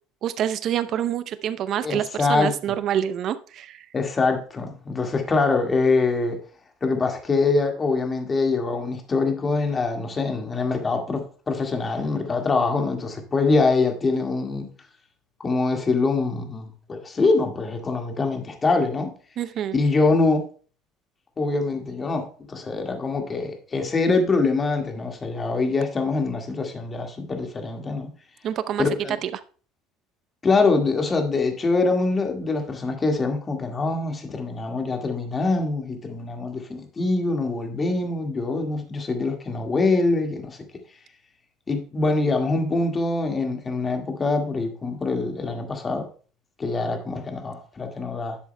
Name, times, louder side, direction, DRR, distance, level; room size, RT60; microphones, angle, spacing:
voice 1, 0.2-3.9 19.4-19.8 28.4-28.9 29.2-29.4, right 10 dB, 55° right, 0.6 m, -27 dB
voice 2, 1.8-2.8 3.9-6.4 6.8-14.7 15.4-19.1 19.7-20.5 21.4-28.1 28.8-29.2 30.4-40.6 41.7-46.1 46.6-48.4, left 3 dB, 30° left, 1.8 m, -24 dB
11.0 x 7.1 x 2.2 m
supercardioid pair, 85°, 0 cm